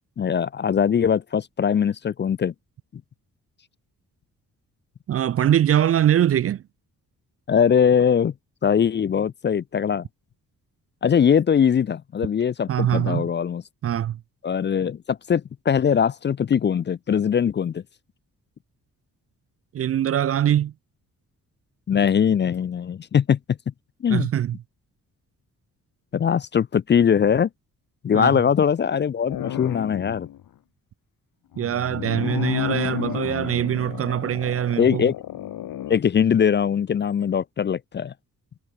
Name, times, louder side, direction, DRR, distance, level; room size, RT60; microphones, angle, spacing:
voice 1, 0.2-2.5 7.5-8.3 8.6-10.0 11.0-13.6 14.4-17.8 21.9-23.4 24.0-24.3 26.1-27.5 28.0-30.3 34.8-35.1 35.9-38.1, left 7 dB, 35° left, 0.4 m, -21 dB
voice 2, 5.1-6.6 12.7-13.3 13.8-14.2 19.7-20.7 24.1-24.6 28.1-28.4 31.6-35.1, right 11 dB, 45° right, 0.4 m, -22 dB
sound 1, 29.3-30.4 31.5-36.0, left 12 dB, 80° left, 2.3 m, -31 dB
cardioid pair, 65°, 34 cm